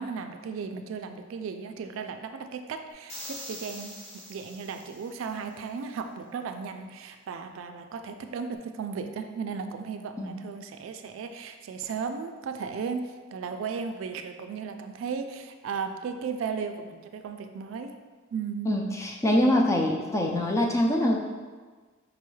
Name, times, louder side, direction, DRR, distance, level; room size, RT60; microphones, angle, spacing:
voice 1, 0.0-17.9 18.3-18.7, right 5 dB, 80° right, 8 dB, 0.3 m, -35 dB
sound 1, 3.1-5.4, equal, 35° left, 0.8 m, -43 dB
voice 2, 18.7-21.3, left 1 dB, 15° left, 0 dB, 0.3 m, -24 dB
4.9 x 2.3 x 3.1 m, 1.4 s
head